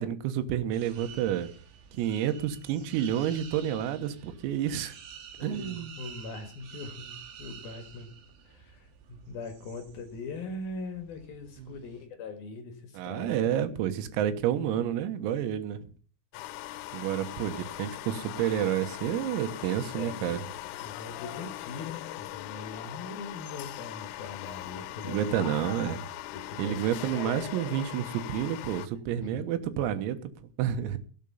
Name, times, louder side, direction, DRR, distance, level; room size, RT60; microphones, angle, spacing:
voice 1, 0.0-1.5 1.9-5.0 5.4-5.9 11.6-11.8 13.0-15.9 16.9-20.4 25.1-26.0 26.6-31.0, right 10 dB, 85° right, 9 dB, 4.0 m, -30 dB
sound 1, 0.7-12.0, right 7 dB, 65° right, 4.3 m, -49 dB
voice 2, 5.4-8.1 8.4-13.4 19.9-20.5 20.8-25.7 26.3-27.0 29.2-29.4, left 3 dB, 60° left, 6 dB, 2.9 m, -41 dB
sound 2, 16.3-28.9, left 15 dB, 80° left, 3.0 m, -40 dB
17.5 x 8.3 x 5.6 m, 0.42 s
omnidirectional pair, 6.0 m